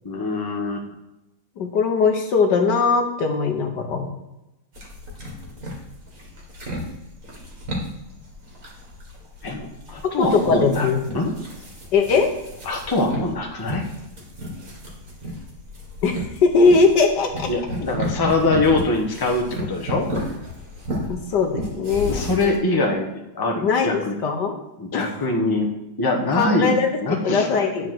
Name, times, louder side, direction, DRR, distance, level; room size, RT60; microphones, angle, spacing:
voice 1, 0.0-0.8 9.4-10.9 11.1-11.3 12.6-13.8 17.5-20.1 22.0-24.1 24.8-25.7 26.0-27.7, left 2 dB, 15° left, 1 dB, 1.1 m, -23 dB
voice 2, 1.6-4.1 10.2-11.0 11.9-12.3 16.0-17.5 21.1-22.2 23.6-24.5 24.9-25.1 26.4-26.9 27.2-27.9, left 4 dB, 65° left, 4 dB, 1.6 m, -20 dB
sound 1, 4.7-22.6, equal, 45° right, 2.5 m, -33 dB
10.0 x 4.9 x 6.1 m, 0.95 s
omnidirectional pair, 2.1 m